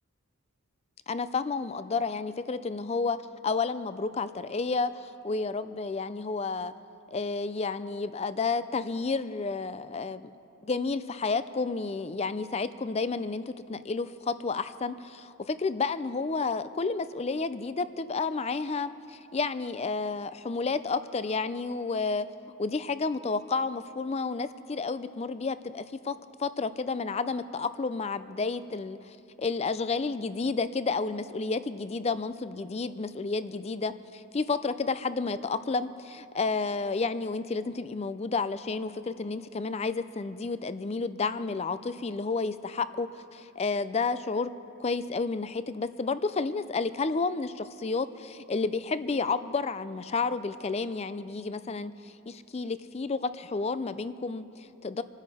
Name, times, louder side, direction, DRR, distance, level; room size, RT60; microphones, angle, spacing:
voice 1, 1.1-3.2 3.4-6.7 7.1-10.3 10.6-22.3 22.6-44.5 44.8-55.0, left 4 dB, 30° left, 14 dB, 0.4 m, -31 dB
27.5 x 9.9 x 4.2 m, 2.7 s
head